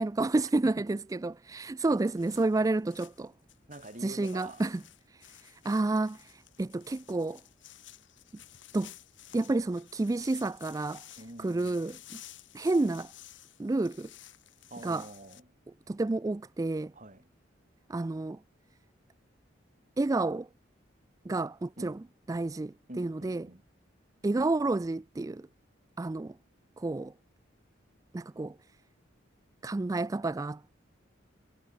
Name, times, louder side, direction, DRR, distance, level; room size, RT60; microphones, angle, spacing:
voice 1, 0.0-3.3 4.0-4.8 5.1-7.4 8.7-8.9 9.3-11.0 11.4-12.0 12.5-13.1 13.6-14.1 14.8-15.1 15.9-16.9 17.9-18.4 20.0-20.5 21.3-22.0 22.3-23.4 24.2-25.5 26.0-26.4 26.8-27.1 28.1-28.6 29.6-30.8, right 2 dB, 20° right, 0.3 m, -30 dB
sound 1, 2.0-15.4, left 13 dB, 75° left, 2.4 m, -54 dB
voice 2, 3.7-4.6 11.2-11.8 14.7-15.5 16.9-17.3 21.8-22.0 22.9-23.6, right 1 dB, 40° right, 3.3 m, -46 dB
head